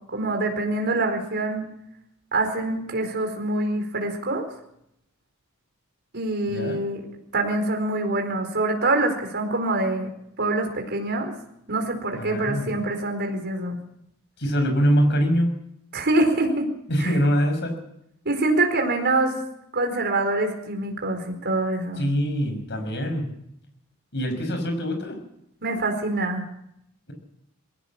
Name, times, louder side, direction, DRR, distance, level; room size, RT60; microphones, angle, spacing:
voice 1, 0.1-1.7 2.3-4.4 6.1-7.0 7.3-10.1 10.4-11.3 11.7-13.8 15.9-16.7 17.0-17.2 18.2-19.4 19.7-22.1 25.6-26.4, right 2 dB, 55° right, 3 dB, 4.6 m, -25 dB
voice 2, 6.5-6.8 12.1-12.7 14.4-15.5 16.9-17.7 22.0-23.3 24.1-25.2, equal, 55° left, 6 dB, 5.7 m, -23 dB
21.0 x 17.5 x 7.3 m, 0.77 s
head